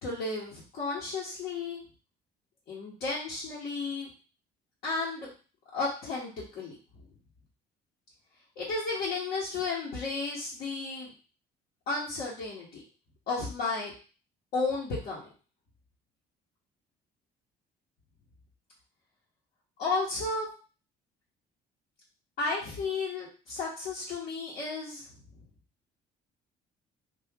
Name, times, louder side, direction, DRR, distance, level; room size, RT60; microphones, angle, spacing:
voice 1, 0.0-1.8 2.7-4.1 4.8-5.3 5.7-7.0 8.6-11.1 11.9-12.8 13.3-13.9 14.5-15.2 19.8-20.5 22.4-25.1, left 3 dB, 70° left, -8 dB, 1.2 m, -33 dB
2.9 x 2.6 x 3.6 m, 0.36 s
cardioid pair, 110°, 17 cm